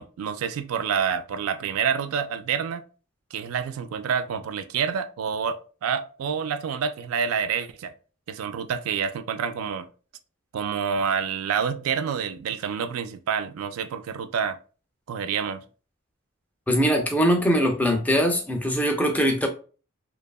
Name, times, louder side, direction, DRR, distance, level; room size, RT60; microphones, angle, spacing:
voice 1, 0.0-2.8 3.3-7.9 8.3-9.9 10.5-14.6 15.1-15.6, right 7 dB, 85° right, 0.3 m, -28 dB
voice 2, 16.7-19.5, equal, 5° left, 0.3 m, -22 dB
2.7 x 2.3 x 2.3 m
head